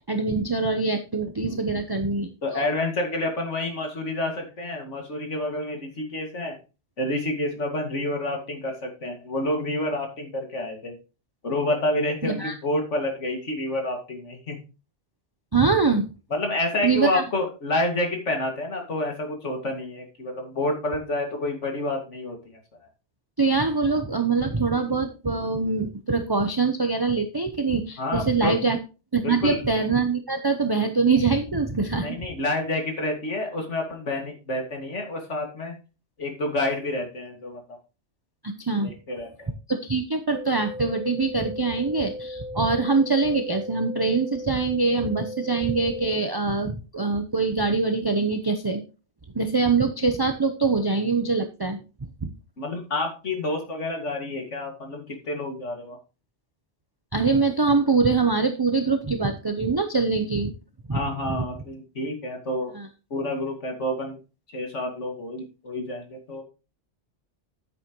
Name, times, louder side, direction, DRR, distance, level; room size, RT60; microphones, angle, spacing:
voice 1, 0.0-2.6 12.2-12.5 15.5-16.1 16.8-17.2 23.4-28.8 29.1-32.1 38.4-38.9 39.7-48.8 49.3-51.8 52.2-52.3 57.1-60.5 60.9-61.0 62.7-62.9, right 4 dB, 25° right, 7 dB, 0.7 m, -24 dB
voice 2, 1.4-1.8 2.4-6.5 7.0-11.0 11.4-14.6 16.3-22.9 28.0-28.5 29.2-29.6 32.0-35.8 36.2-37.6 38.8-39.5 52.6-56.0 60.9-62.7 63.1-64.2 64.5-66.4, left 1 dB, 85° left, 3 dB, 2.6 m, -29 dB
sound 1, 40.3-46.3, left 1 dB, 45° left, 3.2 m, -37 dB
9.5 x 8.9 x 3.1 m, 0.32 s
omnidirectional pair, 1.2 m